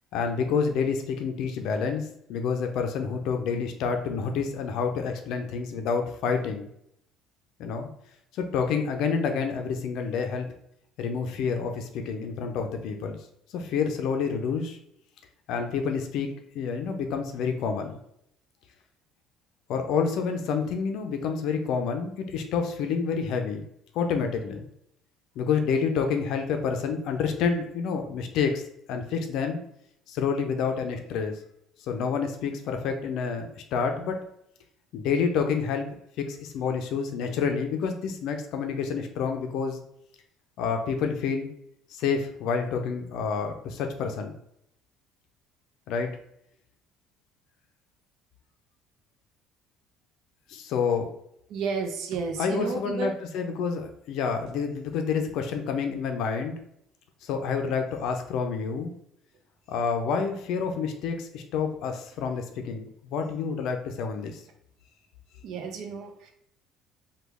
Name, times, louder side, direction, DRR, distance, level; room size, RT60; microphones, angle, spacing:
voice 1, 0.1-6.7 7.6-7.9 8.4-10.5 11.0-13.2 13.5-14.8 15.5-18.0 19.7-23.7 23.9-24.7 25.4-28.6 28.9-29.6 30.1-31.4 31.9-34.2 34.9-35.9 36.2-39.8 40.6-41.5 41.9-44.4 45.9-46.1 50.5-51.1 52.4-56.6 57.2-58.9 59.7-64.4, left 5 dB, 70° left, 5 dB, 0.4 m, -28 dB
voice 2, 51.5-53.1 65.4-66.3, right 5 dB, 70° right, 5 dB, 0.6 m, -32 dB
3.1 x 2.2 x 3.4 m, 0.74 s
supercardioid pair, 95°, 0 cm